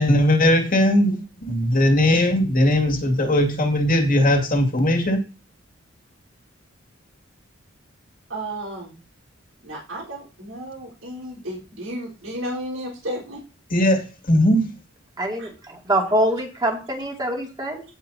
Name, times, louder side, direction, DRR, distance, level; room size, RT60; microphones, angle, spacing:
voice 1, 0.0-5.2 13.7-14.7, left 1 dB, 45° left, 3 dB, 2.5 m, -19 dB
voice 2, 8.3-9.0 9.6-13.4 15.4-15.5, right 1 dB, 85° right, -5 dB, 4.2 m, -33 dB
voice 3, 15.2-17.8, right 1 dB, 20° right, 0 dB, 2.6 m, -24 dB
17.0 x 5.7 x 2.8 m, 0.33 s
head